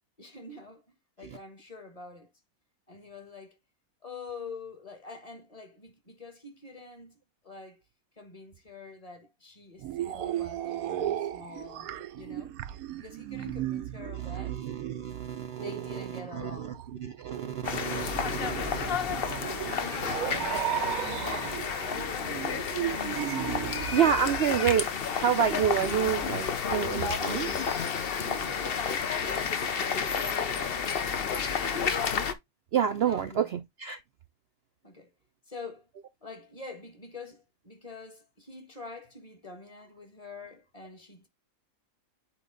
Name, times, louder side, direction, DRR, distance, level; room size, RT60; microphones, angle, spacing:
voice 1, 0.2-2.3 2.9-3.6 4.0-7.2 7.4-7.8 8.2-12.5 13.0-14.6 15.6-16.8 19.4-20.6 21.0-22.7 28.2-31.0 31.6-32.0 33.0-33.5 34.8-35.1 35.5-35.9 36.2-41.3, left 3 dB, 25° left, 1.4 m, -46 dB
sound 1, 9.8-24.4, right 12 dB, 80° right, 1.1 m, -36 dB
voice 2, 14.2-20.4 20.8-21.6 23.9-24.9 25.2-27.6 32.7-34.0, right 8 dB, 60° right, 0.7 m, -30 dB
sound 2, 17.6-32.3, left 6 dB, 45° left, 0.9 m, -31 dB
8.7 x 3.0 x 3.8 m
omnidirectional pair, 1.5 m